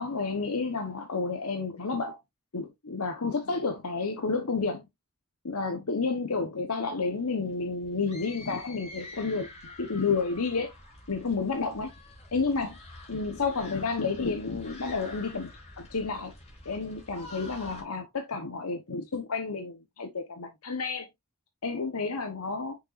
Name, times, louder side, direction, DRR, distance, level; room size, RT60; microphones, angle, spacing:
voice 1, 0.0-2.2 2.5-4.8 5.4-10.7 11.1-11.9 12.3-12.8 13.1-16.3 16.6-21.1 21.6-22.8, left 4 dB, 75° left, 1.0 m, -31 dB
sound 1, 7.2-17.8, left 2 dB, 30° left, 2.9 m, -47 dB
6.3 x 6.0 x 2.5 m
head